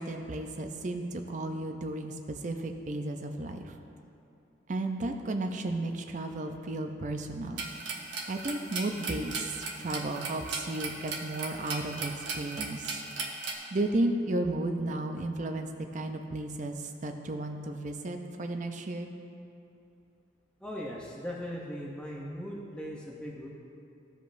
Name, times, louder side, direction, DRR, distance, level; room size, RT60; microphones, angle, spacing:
voice 1, 0.0-3.7 4.7-7.7 8.3-13.0 13.7-19.1, right 2 dB, 40° right, 5 dB, 0.5 m, -33 dB
sound 1, 7.6-13.5, right 4 dB, 80° right, 1.0 m, -37 dB
voice 2, 20.6-23.5, equal, 5° left, -4 dB, 0.6 m, -39 dB
14.0 x 5.1 x 2.6 m, 2.7 s
head